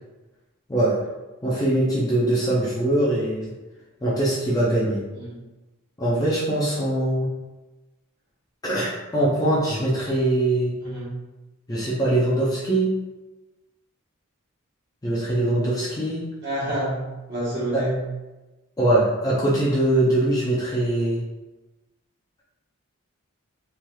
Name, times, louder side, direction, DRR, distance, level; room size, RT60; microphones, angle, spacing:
voice 1, 1.4-3.5 4.0-5.0 6.0-7.3 8.6-10.7 11.7-12.9 15.0-16.2 17.7-17.8 18.8-21.2, right 1 dB, 15° left, -6 dB, 0.4 m, -22 dB
voice 2, 10.8-11.2 16.4-18.0, right 1 dB, 45° right, -9 dB, 1.3 m, -28 dB
3.2 x 2.8 x 2.3 m, 1.1 s
head